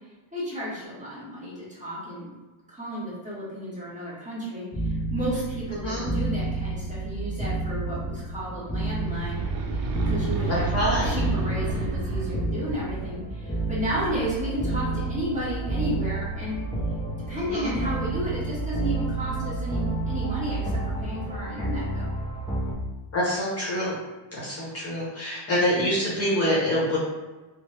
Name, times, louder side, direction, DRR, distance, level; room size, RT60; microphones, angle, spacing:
voice 1, 0.3-2.3 2.7-9.4 9.7-10.8 11.0-16.6 17.3-22.1, equal, 15° right, -9 dB, 1.1 m, -33 dB
sound 1, 4.7-22.7, right 2 dB, 10° left, 0.3 m, -30 dB
sound 2, 8.7-12.7, right 2 dB, 60° right, 0.6 m, -30 dB
voice 2, 10.7-11.1 17.4-17.7 23.1-24.0 24.3-27.0, equal, 30° left, -7 dB, 0.9 m, -26 dB
3.2 x 2.1 x 3.0 m, 1.2 s
cardioid pair, 135°, 49 cm